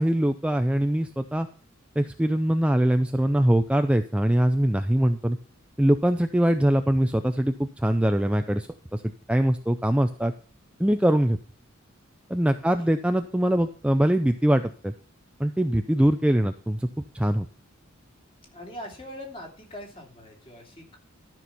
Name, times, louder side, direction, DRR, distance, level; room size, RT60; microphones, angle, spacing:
voice 1, 0.0-1.5 2.0-5.4 5.8-9.0 9.3-10.3 10.8-11.4 12.3-14.9 15.4-16.9 17.1-17.5, right 1 dB, 5° right, 7 dB, 0.4 m, -22 dB
voice 2, 12.4-12.9 18.5-21.0, left 1 dB, 25° left, 0 dB, 2.9 m, -42 dB
13.0 x 6.1 x 5.5 m, 0.42 s
head